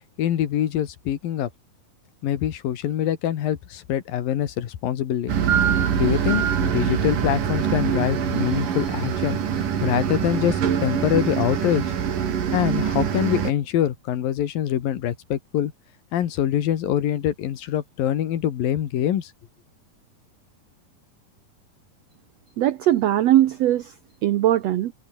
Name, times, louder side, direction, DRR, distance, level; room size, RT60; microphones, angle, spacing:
voice 1, 0.2-1.5 2.2-5.3 6.0-11.8 12.5-15.7 16.1-19.3, left 11 dB, 75° left, 3.5 m, -24 dB
sound 1, 5.3-13.5, right 8 dB, 65° right, 4.2 m, -24 dB
voice 2, 22.6-23.9 24.2-24.9, right 13 dB, 80° right, 1.5 m, -20 dB
omnidirectional pair, 4.1 m